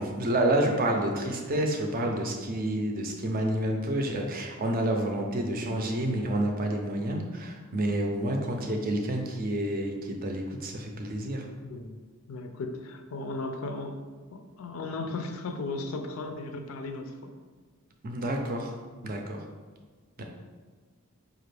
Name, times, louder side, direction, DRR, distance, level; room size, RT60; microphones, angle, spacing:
voice 1, 0.0-11.5 18.0-18.7 19.0-19.4 20.2-20.3, right 1 dB, 40° right, 3 dB, 0.5 m, -29 dB
voice 2, 11.6-12.0 12.3-14.0 14.3-17.4, left 3 dB, 75° left, 6 dB, 0.4 m, -36 dB
5.0 x 2.4 x 3.3 m, 1.4 s
head